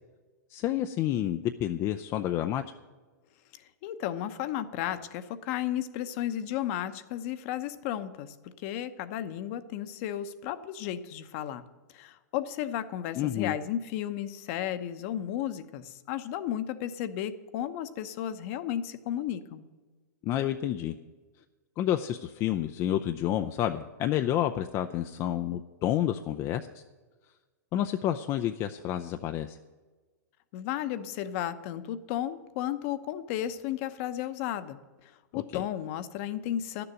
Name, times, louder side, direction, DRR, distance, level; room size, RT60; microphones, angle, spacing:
voice 1, 0.5-2.6 13.2-13.5 20.2-20.9 21.8-26.8 27.7-29.6 35.3-35.6, left 11 dB, 30° left, 7 dB, 0.5 m, -29 dB
voice 2, 3.8-8.3 8.6-11.6 11.9-19.6 30.5-34.8 35.3-36.8, left 11 dB, 50° left, 11 dB, 0.9 m, -33 dB
11.5 x 6.9 x 9.0 m, 1.3 s
hypercardioid pair, 125°, 10 cm